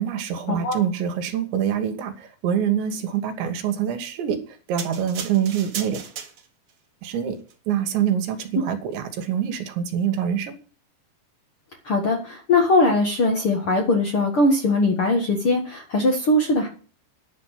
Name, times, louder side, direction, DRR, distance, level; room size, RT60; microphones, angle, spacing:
voice 1, 0.0-6.1 7.0-7.4 7.7-10.6, right 9 dB, 80° right, 3.7 m, -25 dB
sound 1, 4.8-6.7 7.4-7.5, right 7 dB, 60° right, 2.0 m, -36 dB
voice 2, 11.8-16.7, left 2 dB, 65° left, 1.3 m, -20 dB
10.5 x 6.2 x 8.9 m
omnidirectional pair, 5.1 m